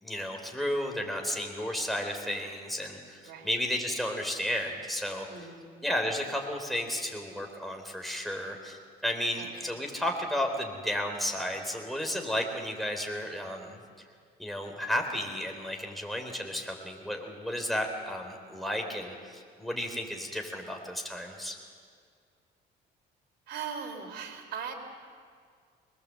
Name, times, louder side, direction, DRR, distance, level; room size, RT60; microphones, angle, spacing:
voice 1, 0.0-5.5 5.8-13.8 14.4-21.6, left 1 dB, ahead, 2 dB, 3.9 m, -33 dB
voice 2, 5.3-5.7 9.4-9.7 23.5-24.7, right 6 dB, 75° right, 4 dB, 3.5 m, -39 dB
24.5 x 21.0 x 7.8 m, 2.1 s
cardioid pair, 110°, 17 cm